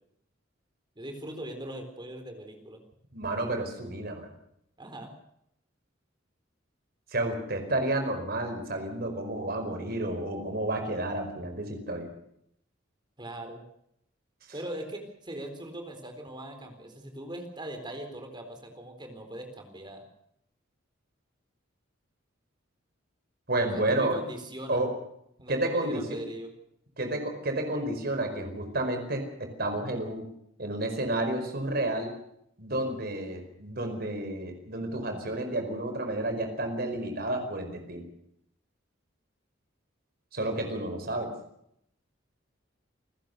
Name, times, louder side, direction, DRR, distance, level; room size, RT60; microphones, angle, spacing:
voice 1, 1.0-2.8 4.8-5.1 13.2-13.6 14.5-20.1 23.6-24.8 25.4-26.5, right 1 dB, 25° right, 6 dB, 4.1 m, -40 dB
voice 2, 3.1-4.3 7.1-12.1 23.5-24.2 24.7-24.9 25.5-26.2 27.0-30.3 30.6-32.1 32.6-38.1 40.3-41.3, right 1 dB, 50° right, 5 dB, 4.9 m, -31 dB
28.5 x 16.0 x 6.8 m, 0.75 s
head